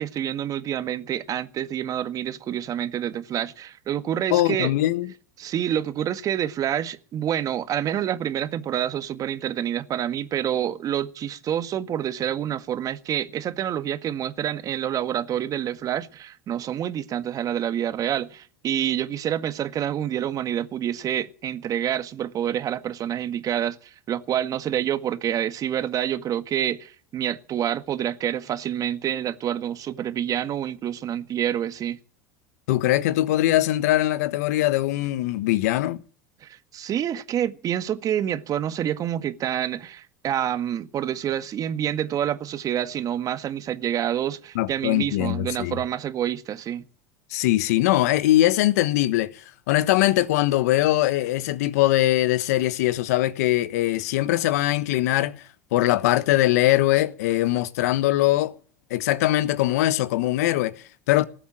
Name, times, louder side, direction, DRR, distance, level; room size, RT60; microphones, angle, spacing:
voice 1, 0.0-4.7 5.4-32.0 36.4-46.8, right 10 dB, 45° right, 1.8 m, -27 dB
voice 2, 4.3-5.1 32.7-36.0 44.5-45.8 47.3-55.4 55.7-58.6 58.9-61.3, left 15 dB, 75° left, 1.2 m, -22 dB
19.0 x 7.9 x 8.9 m
hypercardioid pair, 90°, 9 cm